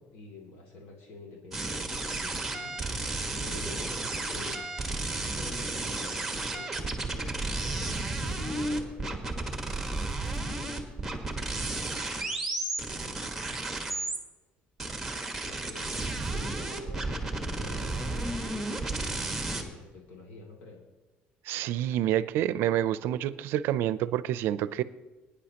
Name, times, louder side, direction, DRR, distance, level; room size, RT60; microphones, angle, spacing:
voice 1, 0.0-2.8 3.3-4.7 5.1-9.2 15.4-19.0 19.4-20.8, left 3 dB, 85° left, 0 dB, 2.7 m, -47 dB
Circut bend, 1.5-14.2 14.8-19.6, right 2 dB, 5° right, 1.4 m, -33 dB
voice 2, 21.5-24.8, right 12 dB, 70° right, 16 dB, 0.5 m, -28 dB
21.5 x 10.0 x 3.0 m, 1.2 s
cardioid pair, 160°, 4 cm